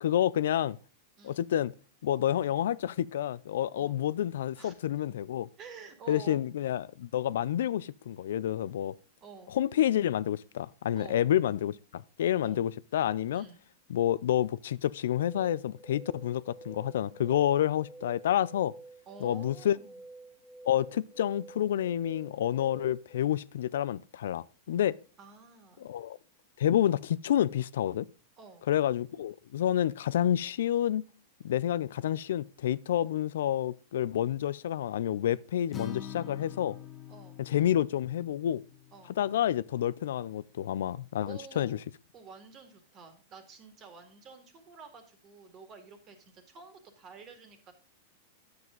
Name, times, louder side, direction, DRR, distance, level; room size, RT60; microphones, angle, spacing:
voice 1, 0.0-0.8 1.2-1.7 2.0-5.5 6.1-8.9 9.5-13.4 13.9-18.7 19.2-19.8 20.6-25.0 25.8-26.2 26.6-28.1 28.7-31.0 31.4-36.8 37.4-38.6 39.2-41.8, left 11 dB, 80° left, 0.4 m, -29 dB
voice 2, 1.2-1.5 3.7-4.0 4.5-5.0 5.6-6.4 9.2-9.6 10.9-11.3 12.4-12.7 13.3-13.6 19.1-20.0 25.2-25.9 28.4-28.7 37.1-37.4 38.9-39.2 41.2-41.8 42.1-47.7, right 5 dB, 30° right, 2.1 m, -50 dB
sound 1, 15.0-23.2, right 2 dB, 90° right, 2.9 m, -50 dB
Acoustic guitar, 35.7-39.9, left 9 dB, 20° left, 1.0 m, -45 dB
9.4 x 7.8 x 3.8 m
supercardioid pair, 140°, 0 cm